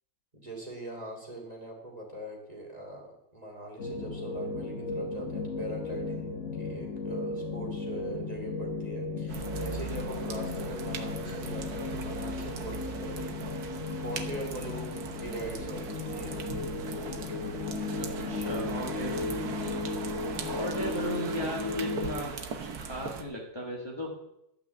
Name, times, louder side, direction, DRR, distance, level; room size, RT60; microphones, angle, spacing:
voice 1, 0.3-13.6 13.9-16.4 20.1-20.7, right 1 dB, 20° right, 0 dB, 2.8 m, -42 dB
sound 1, 3.8-22.2, left 3 dB, 45° left, 1.2 m, -35 dB
sound 2, 9.3-23.2, right 6 dB, 60° right, 1.5 m, -39 dB
voice 2, 17.9-19.8 20.5-22.3 22.6-24.1, equal, 15° left, -3 dB, 1.8 m, -36 dB
12.0 x 6.0 x 8.2 m, 0.80 s
omnidirectional pair, 2.0 m